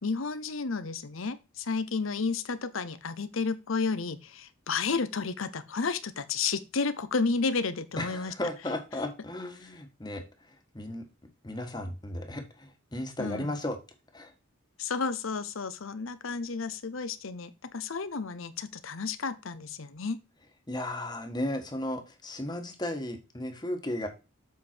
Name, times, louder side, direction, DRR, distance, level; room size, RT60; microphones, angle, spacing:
voice 1, 0.0-8.3 13.2-13.5 14.8-20.2, left 4 dB, 80° left, 12 dB, 0.8 m, -32 dB
voice 2, 8.0-10.2 10.5-11.1 11.4-13.8 14.1-14.3 20.7-24.1, left 1 dB, 20° left, 5 dB, 1.4 m, -35 dB
7.5 x 5.3 x 4.4 m, 0.28 s
head